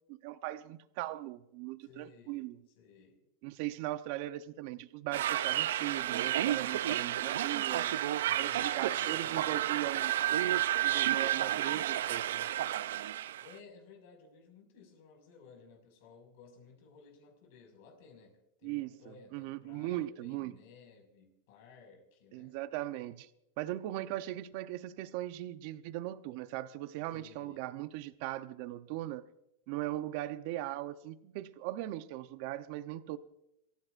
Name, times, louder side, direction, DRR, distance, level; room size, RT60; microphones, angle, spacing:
voice 1, 0.1-2.6 3.4-7.9 8.4-10.1 10.8-12.5 18.6-18.9 19.3-20.5 22.3-23.3 23.6-29.2 29.7-33.2, right 15 dB, 55° right, 0.8 m, -39 dB
voice 2, 1.8-3.2 8.3-9.7 13.4-22.6 27.1-27.7, left 5 dB, 65° left, 5.7 m, -57 dB
sound 1, 5.1-13.5, right 12 dB, 85° right, 0.4 m, -31 dB
26.0 x 15.0 x 2.6 m
supercardioid pair, 135°, 0 cm